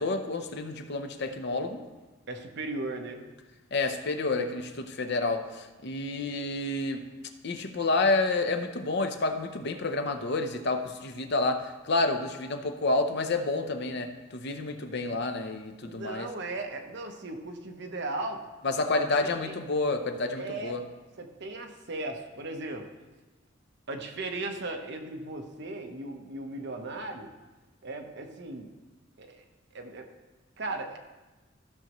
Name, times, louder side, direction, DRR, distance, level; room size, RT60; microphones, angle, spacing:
voice 1, 0.0-1.8 3.7-7.0 7.4-16.3 18.6-20.8, left 3 dB, 60° left, 7 dB, 0.7 m, -29 dB
voice 2, 2.3-3.2 15.8-18.4 18.9-19.0 19.4-19.6 20.4-20.8 21.2-22.9 23.9-27.3 27.8-28.7 29.2-29.4 29.7-30.1 30.6-31.0, right 2 dB, 60° right, 4 dB, 1.0 m, -37 dB
14.0 x 6.4 x 3.0 m, 1.2 s
head